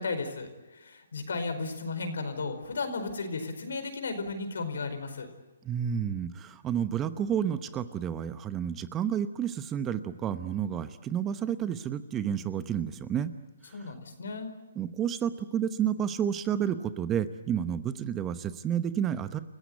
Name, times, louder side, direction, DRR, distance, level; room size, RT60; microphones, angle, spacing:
voice 1, 0.0-5.3 13.7-14.5, left 3 dB, 75° left, 8 dB, 4.8 m, -34 dB
voice 2, 5.6-13.3 13.7-13.9 14.7-19.4, right 9 dB, 15° right, 12 dB, 0.9 m, -30 dB
29.0 x 16.0 x 9.4 m, 1.2 s
hypercardioid pair, 145°, 0 cm